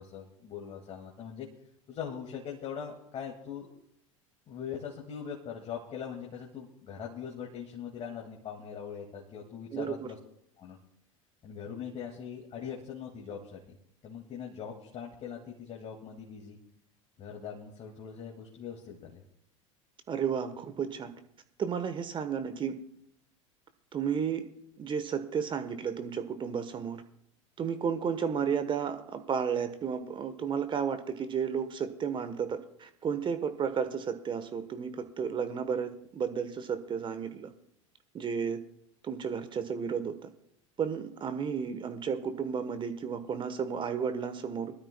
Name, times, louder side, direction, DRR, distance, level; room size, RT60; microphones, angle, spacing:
voice 1, 0.0-1.5 1.9-3.7 4.5-10.2 10.6-10.8 11.4-13.6 14.0-16.6 17.2-19.2, left 7 dB, 35° left, -1 dB, 2.1 m, -41 dB
voice 2, 9.7-10.1 20.1-21.1 21.6-22.8 23.9-24.4 24.8-27.0 27.6-37.5 38.1-38.6 39.0-40.3 40.8-44.7, right 7 dB, 30° right, 10 dB, 1.1 m, -33 dB
23.0 x 13.0 x 2.2 m, 0.73 s
hypercardioid pair, 80°, 17 cm